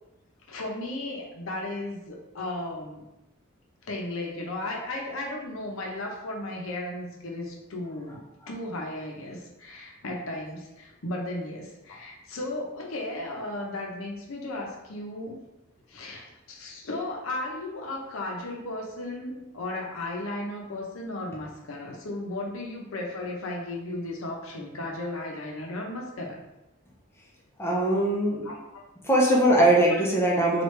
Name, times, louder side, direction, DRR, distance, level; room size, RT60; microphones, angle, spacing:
voice 1, 0.5-3.0 3.8-15.4 15.9-26.4 28.4-28.8 29.9-30.0, left 2 dB, 85° left, 0 dB, 0.7 m, -35 dB
voice 2, 27.6-28.5 29.0-30.6, right 1 dB, 10° left, -4 dB, 0.6 m, -21 dB
3.1 x 2.4 x 3.1 m, 0.94 s
head